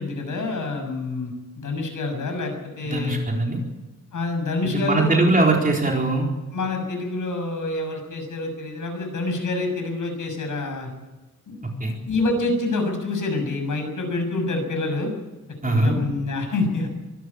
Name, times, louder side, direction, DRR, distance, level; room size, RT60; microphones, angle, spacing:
voice 1, 0.0-3.2 4.1-5.1 6.5-10.9 11.5-11.6 12.1-15.1 15.6-16.9, left 2 dB, 70° left, 5 dB, 6.7 m, -27 dB
voice 2, 2.8-3.6 4.6-6.3 11.8-11.9 15.6-15.9, right 2 dB, 25° right, 0 dB, 4.2 m, -21 dB
24.0 x 13.5 x 8.7 m, 1.1 s
wide cardioid pair, 130°, 32 cm